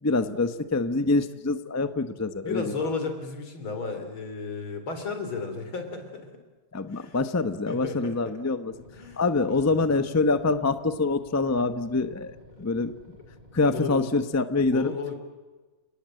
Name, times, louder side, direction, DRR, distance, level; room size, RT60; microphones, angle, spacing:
voice 1, 0.0-2.9 6.7-8.7 9.2-12.9 13.5-14.9, left 3 dB, 15° left, 11 dB, 0.6 m, -25 dB
voice 2, 2.4-6.3 6.9-7.2 7.7-8.3 8.9-10.0 12.6-12.7 13.7-14.1 14.7-15.2, left 4 dB, 90° left, 7 dB, 4.3 m, -34 dB
sound 1, 8.7-13.9, equal, 20° right, 5.8 m, -52 dB
30.0 x 19.5 x 7.8 m, 1.3 s
omnidirectional pair, 2.2 m